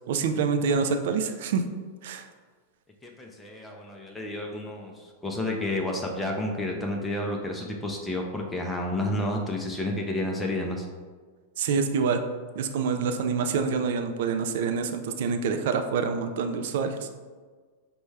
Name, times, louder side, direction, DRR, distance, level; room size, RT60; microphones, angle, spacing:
voice 1, 0.1-1.6 2.0-2.2 11.6-12.2 12.6-17.1, right 5 dB, 65° right, 7 dB, 0.4 m, -26 dB
voice 2, 3.0-10.9, left 1 dB, 10° left, 0 dB, 0.5 m, -30 dB
5.1 x 2.2 x 3.2 m, 1.5 s
hypercardioid pair, 100°, 0 cm